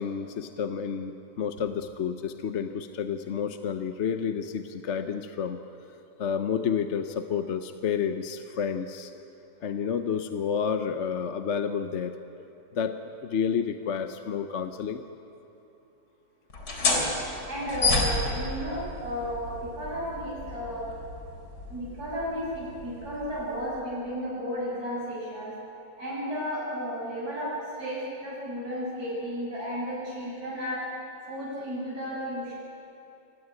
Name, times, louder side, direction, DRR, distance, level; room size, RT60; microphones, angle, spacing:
voice 1, 0.0-5.6 6.2-9.1 9.6-12.1 12.7-15.0, left 7 dB, 50° left, 8 dB, 1.0 m, -30 dB
sound 1, 16.5-23.8, left 2 dB, 75° left, 3.9 m, -31 dB
voice 2, 17.5-20.9 21.7-25.5 26.0-27.5 27.8-30.9 31.3-32.5, equal, 60° right, -9 dB, 7.3 m, -33 dB
25.0 x 17.5 x 9.7 m, 2.9 s
omnidirectional pair, 1.8 m